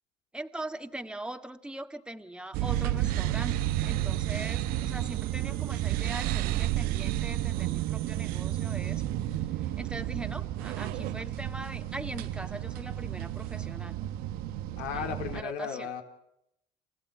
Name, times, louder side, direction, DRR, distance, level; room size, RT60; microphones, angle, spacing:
voice 1, 0.3-9.0 9.3-9.4 9.8-14.1 14.9-15.9, right 1 dB, 5° right, 7 dB, 1.8 m, -41 dB
sound 1, 2.5-15.4, right 13 dB, 75° right, 0.9 m, -31 dB
voice 2, 14.8-16.0, left 7 dB, 80° left, 5 dB, 3.8 m, -35 dB
29.0 x 15.5 x 8.9 m, 0.78 s
supercardioid pair, 85°, 15 cm